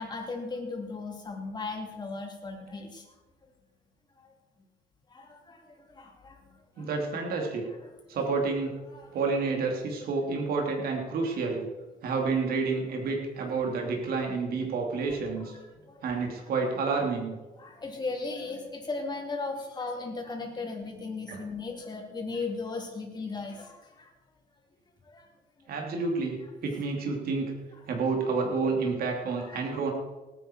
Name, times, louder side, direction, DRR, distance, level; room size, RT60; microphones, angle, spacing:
voice 1, 0.0-3.1 3.4-3.5 4.2-4.3 5.1-6.9 8.9-9.2 15.1-16.0 17.6-24.1 25.0-25.3 29.3-29.9, left 3 dB, 25° left, 0 dB, 3.4 m, -37 dB
voice 2, 6.8-7.7 8.1-8.7 9.1-11.7 12.0-15.5 16.0-17.4 21.3-21.4 25.7-27.5 27.9-29.9, right 4 dB, 65° right, 1 dB, 3.0 m, -29 dB
18.5 x 9.4 x 4.6 m, 1.2 s
cardioid pair, 110°, 17 cm